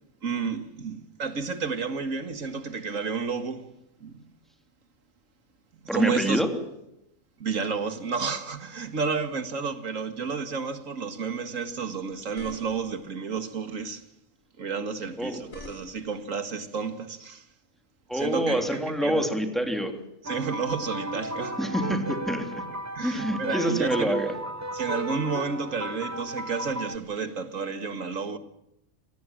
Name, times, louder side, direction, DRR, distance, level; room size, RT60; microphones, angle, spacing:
voice 1, 0.2-3.7 4.0-4.3 5.9-6.4 7.4-14.0 14.6-17.5 18.1-19.2 20.2-21.6 22.9-24.2 24.7-28.4, right 5 dB, 75° right, 2.2 m, -31 dB
voice 2, 5.9-6.5 15.2-15.4 18.1-20.0 21.6-22.6 23.0-24.3, equal, ahead, 3.2 m, -26 dB
sound 1, 12.1-13.1 15.1-16.2, left 2 dB, 85° left, 4.1 m, -46 dB
sound 2, 20.2-27.0, right 1 dB, 15° right, 0.7 m, -35 dB
24.5 x 19.0 x 7.6 m
omnidirectional pair, 1.4 m